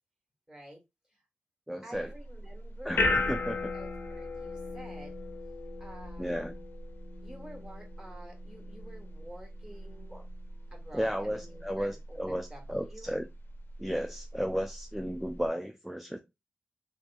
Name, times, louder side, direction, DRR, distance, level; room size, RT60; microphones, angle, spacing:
voice 1, 0.5-0.8 1.1-1.2 1.8-3.2 3.7-5.2 5.8-6.4 7.2-10.3 10.7-13.1, right 1 dB, 20° right, 1.3 m, -50 dB
voice 2, 1.7-2.1 2.9-3.7 6.2-6.5 10.1-10.2 10.9-13.3 13.8-16.2, equal, 5° right, 0.3 m, -34 dB
sound 1, 1.9-15.5, left 2 dB, 65° left, 0.5 m, -37 dB
2.6 x 2.2 x 2.5 m
cardioid pair, 55°, 4 cm